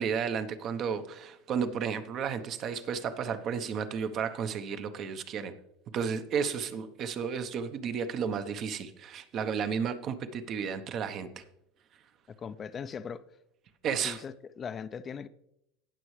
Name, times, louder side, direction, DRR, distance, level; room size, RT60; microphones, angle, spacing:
voice 1, 0.0-5.5 5.9-11.4 13.8-14.2, right 6 dB, 45° right, 0.9 m, -33 dB
voice 2, 12.3-13.2 14.0-15.3, left 6 dB, 30° left, 0.5 m, -39 dB
17.5 x 6.2 x 3.2 m
supercardioid pair, 105°, 0 cm